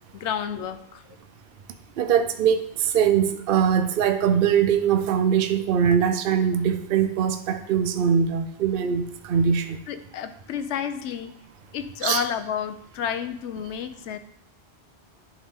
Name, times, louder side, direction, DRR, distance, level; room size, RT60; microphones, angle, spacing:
voice 1, 0.1-1.0 9.9-11.3 11.7-14.2, left 8 dB, 90° left, 11 dB, 0.9 m, -30 dB
voice 2, 2.0-9.8 12.0-12.2, right 8 dB, 60° right, 8 dB, 0.7 m, -22 dB
10.5 x 3.6 x 3.6 m, 0.71 s
omnidirectional pair, 1.1 m